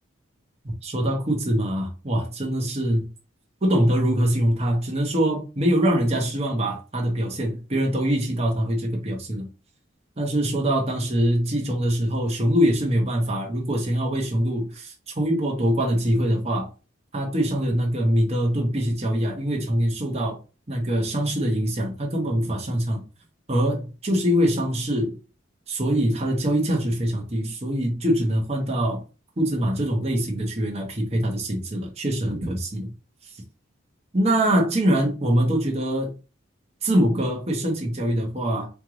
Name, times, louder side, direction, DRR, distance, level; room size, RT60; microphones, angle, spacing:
voice 1, 0.8-3.1 3.6-9.5 10.2-16.7 17.1-20.4 20.7-23.0 23.5-25.2 25.7-29.0 29.4-32.9 34.1-36.2 36.8-38.7, equal, 30° right, 1.0 m, -23 dB
4.4 x 2.5 x 3.1 m
head